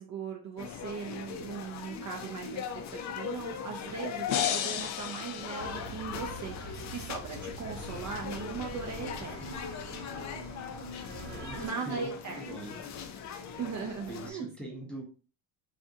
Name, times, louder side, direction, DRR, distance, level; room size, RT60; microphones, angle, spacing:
voice 1, 0.0-2.6 2.9-9.6 11.6-12.4 13.6-14.5, right 6 dB, 40° right, 1 dB, 0.5 m, -39 dB
sound 1, 0.6-14.3, left 7 dB, 40° left, 0.4 m, -40 dB
sound 2, 4.3-6.4, left 9 dB, 75° left, 0.7 m, -34 dB
sound 3, 5.6-11.7, right 2 dB, 80° right, 1.4 m, -44 dB
voice 2, 11.1-12.1 12.4-12.8 13.5-13.6 14.1-15.0, right 2 dB, ahead, -2 dB, 0.8 m, -42 dB
3.4 x 2.6 x 2.6 m, 0.38 s
cardioid pair, 125°, 49 cm